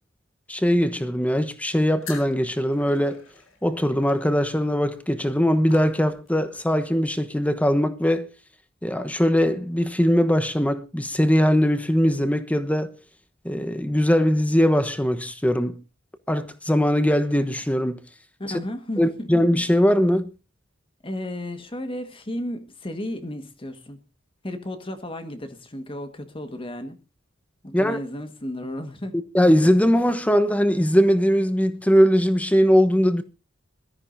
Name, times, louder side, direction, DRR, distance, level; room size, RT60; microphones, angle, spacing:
voice 1, 0.5-3.2 3.6-8.3 8.8-12.9 13.4-15.8 16.3-18.0 19.0-20.3 27.7-28.0 29.3-33.2, equal, 5° left, 1.1 m, -20 dB
sound 1, 2.0-6.5, left 5 dB, 90° left, 3.6 m, -45 dB
voice 2, 18.4-19.3 21.0-24.0 24.4-27.0 27.6-29.1, left 1 dB, 25° left, 1.6 m, -33 dB
21.5 x 13.5 x 2.7 m
head